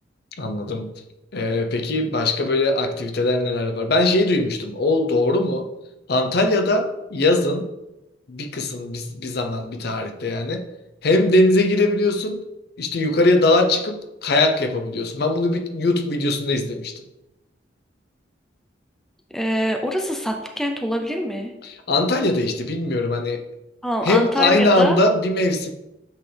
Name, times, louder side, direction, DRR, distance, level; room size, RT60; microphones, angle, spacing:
voice 1, 0.4-0.9 1.3-5.7 6.1-7.7 8.3-10.7 11.0-12.4 12.8-16.9 21.6-23.5 24.0-25.7, left 2 dB, 55° left, 6 dB, 0.6 m, -21 dB
voice 2, 19.3-21.5 23.8-25.0, equal, ahead, 3 dB, 0.5 m, -24 dB
8.0 x 3.8 x 3.4 m, 0.93 s
head